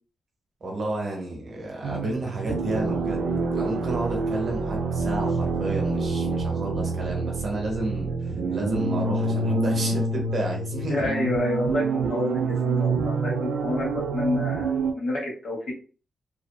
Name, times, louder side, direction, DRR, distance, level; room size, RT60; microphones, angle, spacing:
voice 1, 0.6-3.2 3.5-11.1, right 1 dB, 45° right, 0 dB, 0.9 m, -31 dB
sound 1, 1.8-14.9, right 3 dB, 85° right, 0.4 m, -27 dB
voice 2, 10.9-15.7, left 2 dB, 55° left, -3 dB, 1.2 m, -29 dB
2.7 x 2.5 x 2.2 m, 0.38 s
wide cardioid pair, 175°, 0 cm